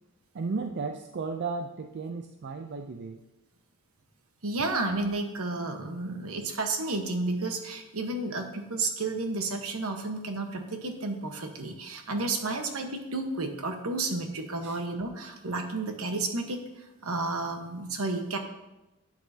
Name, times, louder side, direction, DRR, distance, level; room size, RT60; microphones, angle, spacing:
voice 1, 0.3-3.2 14.6-14.8, right 4 dB, 50° right, 5 dB, 0.5 m, -34 dB
voice 2, 4.4-16.6 17.0-18.4, right 2 dB, 70° right, 5 dB, 1.2 m, -31 dB
11.5 x 8.3 x 2.8 m, 1.0 s
head